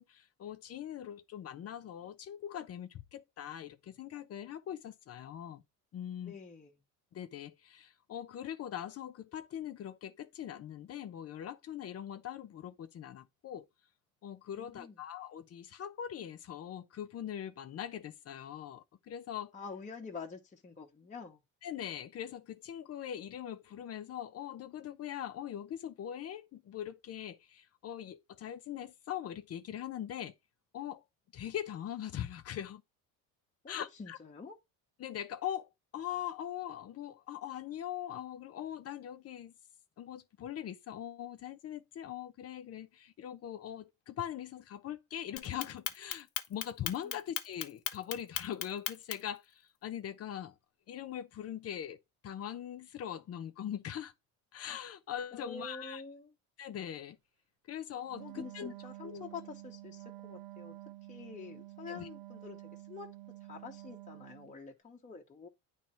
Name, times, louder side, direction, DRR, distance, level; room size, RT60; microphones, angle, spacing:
voice 1, 0.0-5.6 5.9-6.3 7.1-13.7 14.2-19.5 21.6-30.3 30.7-31.0 31.3-32.8 33.7-34.2 35.0-39.5 40.0-50.6 50.9-54.1 54.5-56.0 56.6-57.2 57.7-58.7 59.0-59.3 61.9-62.1, left 10 dB, 40° left, 0.8 m, -41 dB
voice 2, 6.2-6.8 14.6-14.9 19.5-21.4 33.6-34.6 47.0-47.2 55.3-56.3 58.2-60.8 61.1-62.6 62.9-63.1 63.4-65.5, left 4 dB, 20° left, 1.2 m, -47 dB
Clock, 45.4-49.4, left 13 dB, 85° left, 1.0 m, -36 dB
Wind instrument woodwind instrument, 58.1-64.6, right 18 dB, 90° right, 0.7 m, -49 dB
9.2 x 3.3 x 4.4 m
cardioid pair, 115°, 36 cm